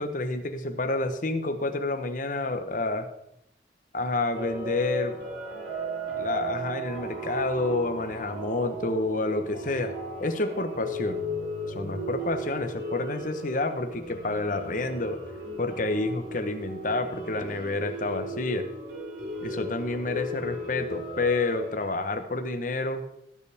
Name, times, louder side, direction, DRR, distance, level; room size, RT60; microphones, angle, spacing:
voice 1, 0.0-3.1 3.9-5.2 6.1-9.9 10.2-11.2 11.7-15.2 15.6-18.7 19.4-23.0, left 2 dB, 50° left, 8 dB, 1.0 m, -29 dB
sound 1, 4.3-21.9, right 1 dB, 80° right, 4.7 m, -36 dB
17.0 x 7.1 x 3.5 m, 0.79 s
head